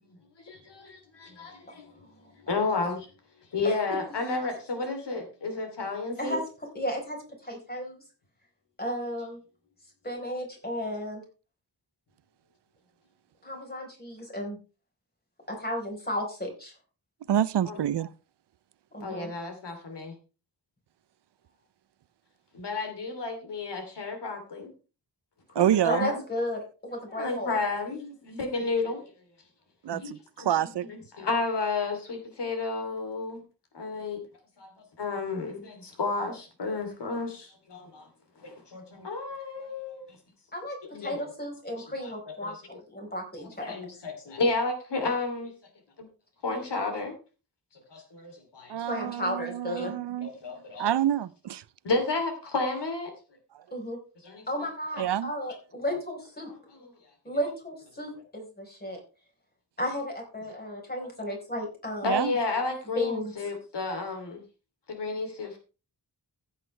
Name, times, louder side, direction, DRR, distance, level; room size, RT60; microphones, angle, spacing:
voice 1, 0.0-3.1 3.5-6.4 17.7-17.8 19.0-20.1 22.5-24.7 25.6-26.2 27.1-29.0 29.9-33.4 33.7-34.2 34.6-34.7 35.0-38.1 38.4-40.1 40.9-41.3 42.0-42.1 42.4-42.6 43.4-45.5 46.0-46.1 46.4-47.1 47.9-48.8 49.8-49.9 50.2-50.9 51.8-53.1 54.2-54.5 55.0-55.1 56.5-56.9 57.3-57.4 62.0-64.4 64.9-65.6, left 3 dB, 80° left, 3.1 m, -32 dB
voice 2, 6.7-8.0 8.8-9.4 10.0-11.2 13.4-14.6 15.5-16.7 18.9-19.3 25.8-27.6 40.5-43.7 48.8-49.9 53.7-54.0 54.5-56.5 57.2-59.0 59.8-62.1 63.0-63.3, equal, 25° left, 4.3 m, -34 dB
voice 3, 17.3-18.1 25.5-26.1 29.8-30.9 48.7-50.3 50.8-51.6 55.0-55.3 62.0-62.3, right 11 dB, 80° right, 0.6 m, -27 dB
15.5 x 8.1 x 3.3 m
wide cardioid pair, 150°, 41 cm